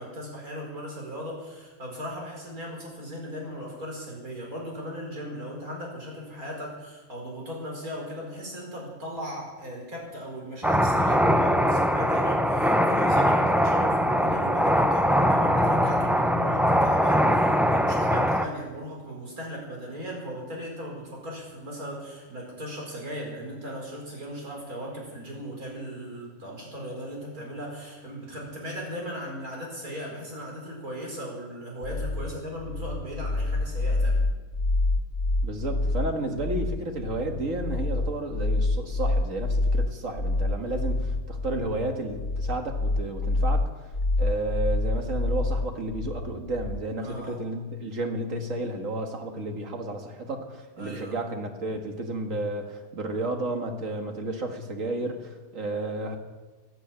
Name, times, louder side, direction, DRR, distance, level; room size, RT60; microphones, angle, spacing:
voice 1, 0.0-34.2 47.0-47.4 50.8-51.2, equal, 85° right, -1 dB, 5.1 m, -37 dB
sound 1, 10.6-18.4, equal, ahead, 0.4 m, -22 dB
sound 2, 31.8-46.8, left 2 dB, 65° left, 1.4 m, -27 dB
voice 2, 35.4-43.9 44.2-56.2, right 2 dB, 65° right, 4 dB, 2.1 m, -32 dB
15.0 x 10.0 x 8.7 m, 1.3 s
omnidirectional pair, 1.5 m